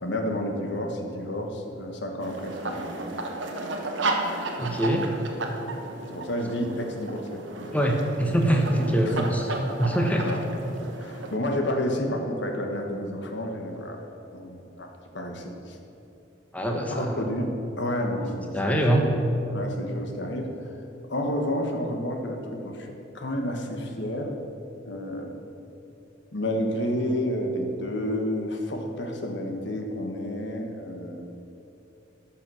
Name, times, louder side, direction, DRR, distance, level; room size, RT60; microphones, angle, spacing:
voice 1, 0.0-2.9 6.1-7.4 9.0-9.3 10.2-10.4 11.0-14.0 14.3-14.9 15.1-15.8 16.9-17.5 17.8-18.8 19.5-20.5 21.1-22.9 23.1-24.3 24.9-25.4 26.3-31.2, left 1 dB, 70° left, 3 dB, 1.3 m, -30 dB
sound 1, 2.2-11.4, right 2 dB, 90° right, 1.2 m, -33 dB
voice 2, 4.6-5.1 7.7-9.5 9.8-10.3 16.5-17.2 18.5-19.0, right 1 dB, 10° left, 1 dB, 1.0 m, -23 dB
13.5 x 5.8 x 6.3 m, 2.9 s
head